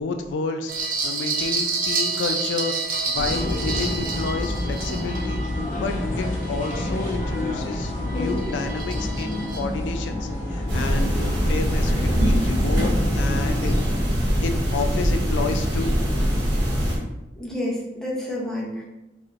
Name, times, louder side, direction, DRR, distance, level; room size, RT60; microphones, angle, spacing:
voice 1, 0.0-2.7 3.1-5.4 5.7-13.9 14.4-16.0, left 4 dB, 85° left, 6 dB, 0.3 m, -30 dB
sound 1, 0.7-7.4 7.8-9.6, right 4 dB, 50° right, 0.6 m, -29 dB
inside train between two Stations, 3.1-13.8, left 1 dB, 45° left, 0.8 m, -28 dB
sound 2, 10.7-17.0, equal, 85° right, 0.9 m, -22 dB
voice 2, 17.4-18.8, left 1 dB, 5° left, -5 dB, 0.7 m, -29 dB
4.2 x 2.7 x 2.4 m, 0.97 s
head